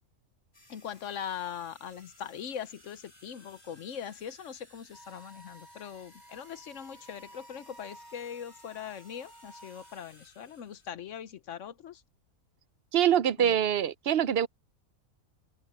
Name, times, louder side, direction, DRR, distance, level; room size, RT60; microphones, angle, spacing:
sound 1, 0.5-10.9, left 1 dB, 20° left, 6.1 m, -59 dB
voice 1, 0.7-12.0 13.4-13.6, left 8 dB, 65° left, 1.1 m, -41 dB
Wind instrument woodwind instrument, 4.9-10.0, right 1 dB, 75° right, 7.9 m, -54 dB
voice 2, 12.9-14.5, right 10 dB, 55° right, 0.7 m, -24 dB
omnidirectional pair, 1.5 m